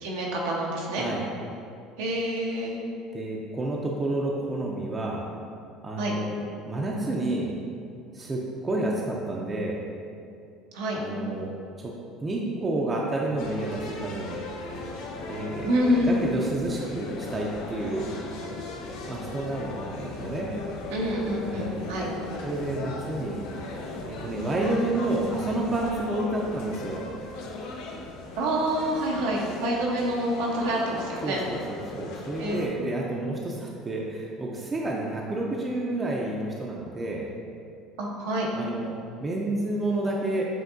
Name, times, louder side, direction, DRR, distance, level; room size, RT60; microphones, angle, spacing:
voice 1, 0.0-1.0 2.0-2.8 6.0-6.1 10.7-11.0 15.6-16.2 20.9-22.1 28.4-31.4 32.4-32.6 38.0-38.5, equal, 85° right, -2 dB, 0.8 m, -27 dB
voice 2, 3.1-5.2 5.8-7.5 8.1-9.8 10.9-11.5 11.8-11.9 12.2-14.4 15.3-18.1 19.1-20.5 21.5-21.9 22.4-23.4 24.0-27.0 31.2-37.3 38.5-40.5, right 2 dB, 25° right, -2 dB, 0.5 m, -30 dB
sound 1, 13.4-32.7, left 3 dB, 80° left, 0.6 m, -38 dB
7.6 x 2.6 x 2.6 m, 2.5 s
supercardioid pair, 100°, 0 cm